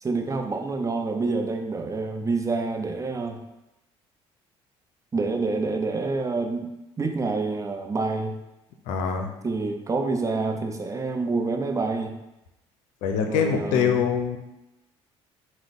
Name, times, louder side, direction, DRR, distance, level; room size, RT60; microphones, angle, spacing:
voice 1, 0.0-3.4 5.1-6.7 7.0-8.4 9.4-12.2 13.3-14.1, right 3 dB, 25° right, 4 dB, 0.5 m, -27 dB
voice 2, 8.9-9.3 13.0-14.4, left 7 dB, 80° left, 4 dB, 0.5 m, -24 dB
4.5 x 2.2 x 4.0 m, 0.92 s
supercardioid pair, 85°, 13 cm